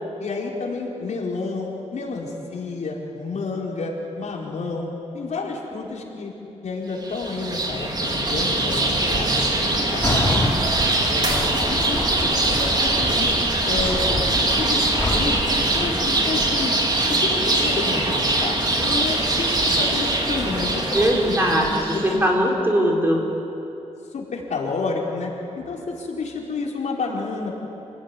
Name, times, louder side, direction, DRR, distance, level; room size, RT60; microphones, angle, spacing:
voice 1, 0.2-6.3 6.6-10.5 11.1-13.3 13.6-14.0 14.5-16.7 17.1-19.5 19.8-22.3 24.1-27.5, left 3 dB, 80° left, -2 dB, 4.5 m, -30 dB
sound 1, 7.0-22.2, right 2 dB, 35° right, 3.3 m, -22 dB
sound 2, 10.0-10.5 11.0-15.9, left 1 dB, 15° left, 5.1 m, -27 dB
voice 2, 20.8-23.3, equal, 20° right, -2 dB, 4.1 m, -21 dB
28.0 x 18.5 x 9.9 m, 2.9 s
wide cardioid pair, 155°, 12 cm